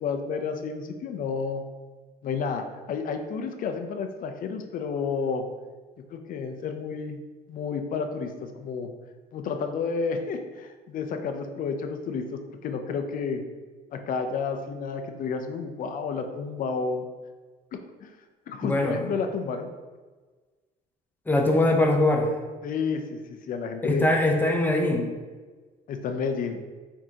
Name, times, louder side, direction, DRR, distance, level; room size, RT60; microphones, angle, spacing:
voice 1, 0.0-1.6 2.2-5.4 6.1-7.2 7.5-8.9 9.3-13.4 13.9-17.1 18.0-18.1 18.5-19.7 22.6-24.1 25.9-26.6, left 5 dB, 55° left, 6 dB, 0.6 m, -31 dB
voice 2, 18.6-19.0 21.3-22.3 23.8-25.1, left 1 dB, 10° left, 1 dB, 0.7 m, -22 dB
4.8 x 3.6 x 2.8 m, 1.3 s
cardioid pair, 110°, 17 cm